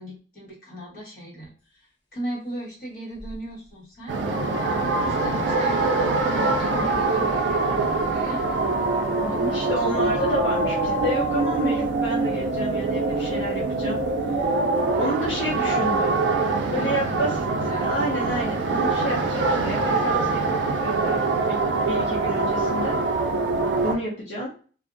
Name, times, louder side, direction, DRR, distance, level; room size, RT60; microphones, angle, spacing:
voice 1, 0.0-4.1 5.0-8.6 9.3-10.3 16.7-18.6, right 1 dB, 50° left, -6 dB, 1.1 m, -37 dB
sound 1, 3.2-3.3 4.1-11.8, left 3 dB, 25° left, 0.7 m, -35 dB
sound 2, 4.1-24.0, right 3 dB, 75° right, 0.4 m, -24 dB
voice 2, 9.2-14.0 14.3-14.7 15.0-16.2 16.7-17.3 17.8-23.0 23.8-24.5, equal, 70° left, -6 dB, 0.6 m, -30 dB
2.5 x 2.0 x 2.4 m, 0.40 s
head